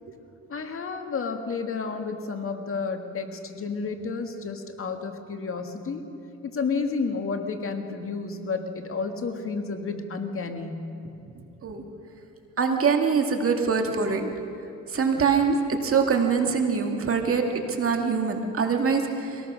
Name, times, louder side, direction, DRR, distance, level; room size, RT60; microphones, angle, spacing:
voice 1, 0.5-6.0 6.4-10.8, left 4 dB, 45° left, 5 dB, 1.8 m, -31 dB
voice 2, 12.6-14.3 14.9-17.4 17.8-19.4, right 5 dB, 45° right, 3 dB, 2.3 m, -23 dB
23.5 x 18.5 x 6.4 m, 2.7 s
cardioid pair, 90°, 30 cm